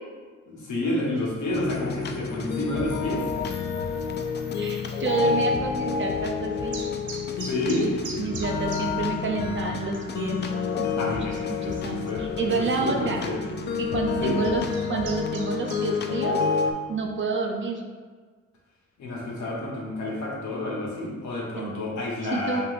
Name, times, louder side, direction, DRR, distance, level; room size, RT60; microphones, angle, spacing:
voice 1, 0.5-3.2 7.4-7.9 11.0-12.2 12.6-13.5 14.2-14.4 19.0-22.6, left 1 dB, 70° left, -4 dB, 1.4 m, -30 dB
sound 1, 1.5-16.7, left 6 dB, 35° left, 0.4 m, -29 dB
voice 2, 4.6-6.8 8.2-10.4 10.8-11.1 11.6-13.2 13.8-14.6 14.9-16.4 16.9-17.8 21.6-21.7 22.3-22.6, right 4 dB, 40° right, 1 dB, 0.6 m, -29 dB
sound 2, 6.7-8.8 9.1-9.2 9.7-9.8 10.1-10.5 11.1-11.2 12.6-12.7 13.4-13.7 14.2-15.8, right 4 dB, 75° right, 0.9 m, -39 dB
5.5 x 2.9 x 2.6 m, 1.5 s
cardioid pair, 90°, 30 cm